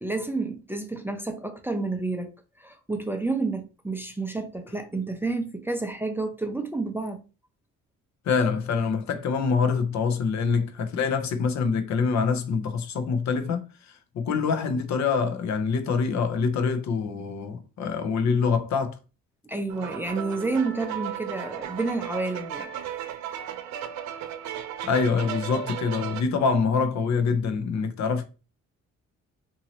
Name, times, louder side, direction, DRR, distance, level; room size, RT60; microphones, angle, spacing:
voice 1, 0.0-7.2 19.4-22.7, right 3 dB, 5° right, 0.5 m, -30 dB
voice 2, 8.2-19.0 24.8-28.2, left 5 dB, 65° left, 0.7 m, -25 dB
sound 1, 19.7-26.2, right 9 dB, 70° right, 0.5 m, -35 dB
2.9 x 2.7 x 2.8 m
cardioid pair, 90°, 30 cm